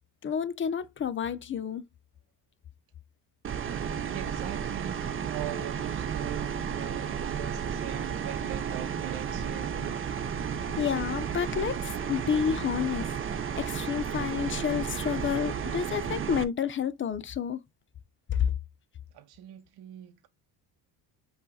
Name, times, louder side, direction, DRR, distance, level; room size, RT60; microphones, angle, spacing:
voice 1, 0.2-1.8 10.8-13.1 13.5-17.6 18.3-18.5, left 8 dB, 30° left, 0.6 m, -29 dB
sound 1, 3.4-16.4, right 7 dB, 30° right, 0.7 m, -33 dB
voice 2, 4.0-10.0 19.1-20.3, right 12 dB, 65° right, 0.8 m, -41 dB
5.3 x 2.5 x 4.1 m
cardioid pair, 95°, 41 cm